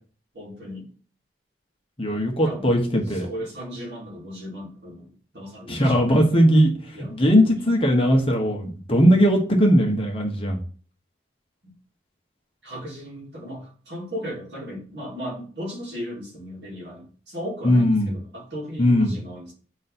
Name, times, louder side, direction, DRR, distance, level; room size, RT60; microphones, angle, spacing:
voice 1, 0.3-0.9 2.4-2.7 3.1-5.1 5.3-6.2 6.9-7.7 11.6-11.7 12.6-19.5, equal, 60° right, -4 dB, 2.8 m, -36 dB
voice 2, 2.0-3.2 5.7-6.7 7.1-10.6 17.6-18.1 18.8-19.1, equal, 30° left, 1 dB, 1.1 m, -19 dB
7.8 x 3.2 x 4.2 m, 0.41 s
head